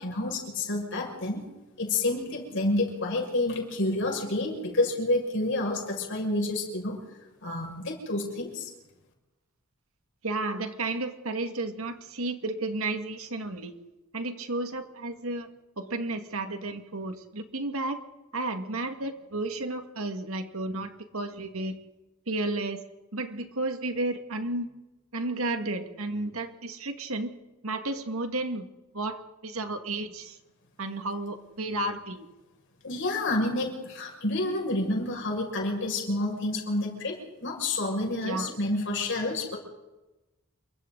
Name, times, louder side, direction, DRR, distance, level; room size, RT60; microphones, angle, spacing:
voice 1, 0.0-1.4 1.8-7.0 7.4-8.7 32.8-39.6, left 2 dB, 55° left, 1 dB, 6.1 m, -29 dB
voice 2, 10.2-13.8 14.1-15.5 15.8-18.0 18.3-21.7 22.3-22.8 23.1-24.7 25.1-27.3 27.6-28.7 28.9-30.4 30.8-32.3 38.2-38.5, right 2 dB, 70° right, 6 dB, 2.0 m, -32 dB
28.5 x 24.0 x 4.0 m, 1.0 s
head